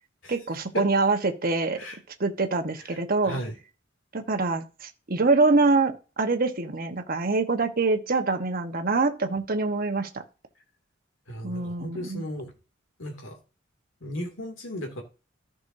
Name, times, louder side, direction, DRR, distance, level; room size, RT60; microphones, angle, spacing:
voice 1, 0.3-1.8 2.2-3.4 4.1-10.2 11.4-12.2, right 3 dB, 50° right, 1.1 m, -25 dB
voice 2, 3.2-3.6 11.3-12.5 13.0-13.4 14.0-15.0, equal, 85° left, 2.5 m, -35 dB
14.0 x 6.1 x 2.7 m
head